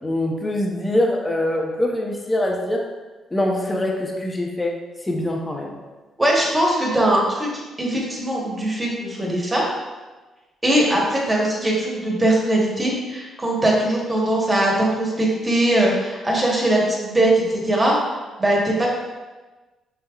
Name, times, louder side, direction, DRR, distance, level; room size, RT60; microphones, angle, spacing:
voice 1, 0.0-2.8 3.3-4.7 5.0-5.8, left 1 dB, 15° left, 0 dB, 0.8 m, -23 dB
voice 2, 6.2-7.5 7.8-9.6 10.6-18.0 18.4-18.9, right 1 dB, 15° right, -3 dB, 1.1 m, -20 dB
5.3 x 3.4 x 2.3 m, 1.2 s
cardioid pair, 90°, 0 cm